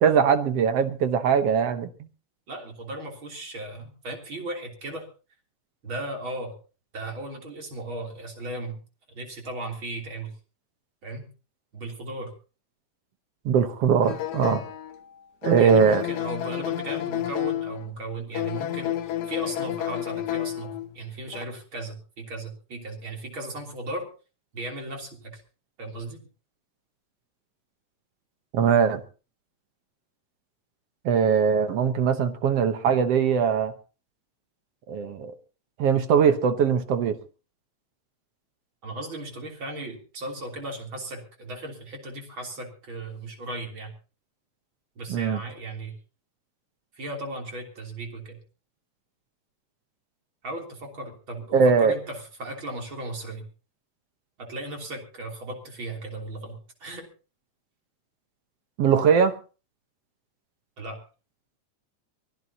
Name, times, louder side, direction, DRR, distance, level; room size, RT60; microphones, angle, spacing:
voice 1, 0.0-1.9 13.5-14.6 15.4-16.0 28.5-29.0 31.1-33.7 34.9-35.4 35.8-37.2 45.1-45.4 51.5-52.0 58.8-59.4, right 7 dB, 65° right, 2.0 m, -21 dB
voice 2, 2.5-5.1 5.8-6.6 6.9-8.8 9.1-10.3 11.0-11.3 11.7-12.3 15.6-24.1 24.5-25.4 25.8-26.2 38.8-43.9 45.0-46.0 47.0-48.4 50.4-53.5 54.4-57.1 60.8-61.0, right 2 dB, 45° right, 3.9 m, -36 dB
sound 1, 14.0-15.0 15.4-17.9 18.3-20.9 21.3-21.4, left 12 dB, 80° left, 2.2 m, -30 dB
23.5 x 15.5 x 2.9 m
omnidirectional pair, 3.3 m